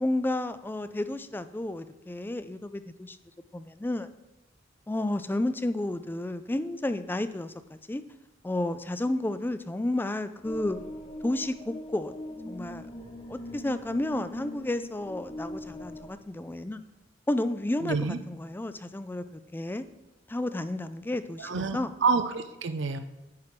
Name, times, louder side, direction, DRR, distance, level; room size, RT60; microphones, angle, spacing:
voice 1, 0.0-3.2 3.5-4.1 4.9-7.5 7.9-8.0 8.4-10.8 11.2-12.1 12.5-12.8 13.3-16.8 17.3-19.8 20.3-21.9, left 1 dB, 10° left, 12 dB, 0.3 m, -31 dB
sound 1, 10.4-16.1, left 1 dB, 30° left, 0.9 m, -41 dB
voice 2, 17.8-18.2 21.4-23.0, right 4 dB, 70° right, 9 dB, 0.6 m, -28 dB
9.5 x 4.6 x 5.9 m, 1.0 s
head